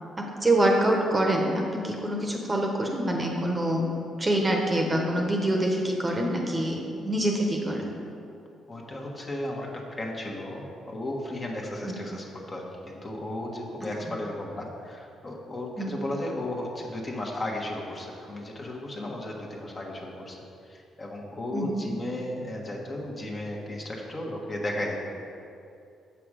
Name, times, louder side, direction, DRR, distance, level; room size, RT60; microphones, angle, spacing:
voice 1, 0.2-3.8 4.2-7.9 11.8-12.0 15.8-16.0 21.5-21.8, right 1 dB, 20° right, 0 dB, 1.0 m, -25 dB
voice 2, 8.7-20.4 20.7-25.0, left 1 dB, 35° left, -1 dB, 1.3 m, -34 dB
7.3 x 6.0 x 4.9 m, 2.6 s
cardioid pair, 90°, 0 cm